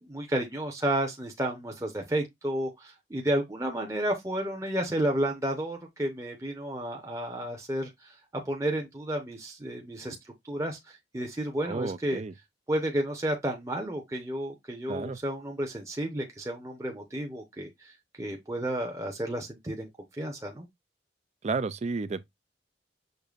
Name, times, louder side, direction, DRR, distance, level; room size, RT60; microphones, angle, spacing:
voice 1, 0.0-8.1 8.5-12.2 12.7-20.7, right 1 dB, 20° right, 0.8 m, -32 dB
voice 2, 11.6-12.3 14.9-15.2 21.4-22.2, right 4 dB, 40° right, 0.4 m, -32 dB
6.6 x 2.7 x 2.4 m
head